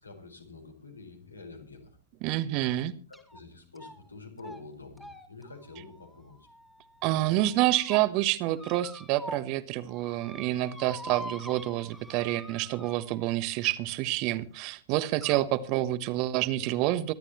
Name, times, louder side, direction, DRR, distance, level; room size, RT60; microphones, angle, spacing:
voice 1, 0.0-1.9 3.1-6.5, left 3 dB, 80° left, 4 dB, 4.6 m, -47 dB
voice 2, 2.2-2.9 7.0-17.1, right 15 dB, 40° right, 13 dB, 1.2 m, -28 dB
sound 1, 3.1-3.4 3.8-4.1 4.4-4.6 5.0-6.9 7.4-8.0 8.6-9.6 9.8-13.4 14.4-14.5 15.2-15.5, left 1 dB, 5° left, 2.4 m, -45 dB
24.0 x 12.0 x 3.0 m, 0.39 s
figure-of-eight pair, 100°, 0 cm